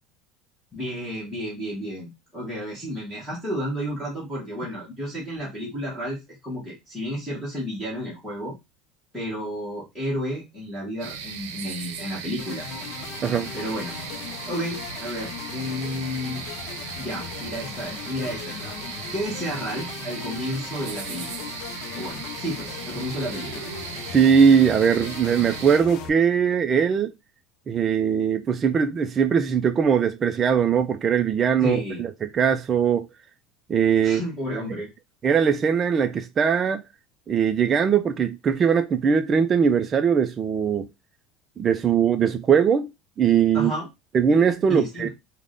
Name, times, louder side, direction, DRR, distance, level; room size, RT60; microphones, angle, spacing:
voice 1, 0.7-8.5 9.1-12.7 13.5-14.0 14.5-16.4 17.0-21.3 21.9-23.6 31.6-32.0 34.0-34.9 43.5-43.9 44.7-45.1, equal, ahead, 1.1 m, -31 dB
sound 1, 11.0-25.8, right 7 dB, 90° right, 0.6 m, -37 dB
sound 2, 12.4-26.1, left 8 dB, 50° left, 0.5 m, -38 dB
voice 2, 24.1-27.1 27.7-33.1 33.7-34.2 35.2-36.8 37.3-40.9 41.6-42.9 43.2-43.7 44.1-45.1, right 7 dB, 20° right, 0.3 m, -20 dB
3.4 x 2.1 x 3.7 m
cardioid pair, 165°, 0 cm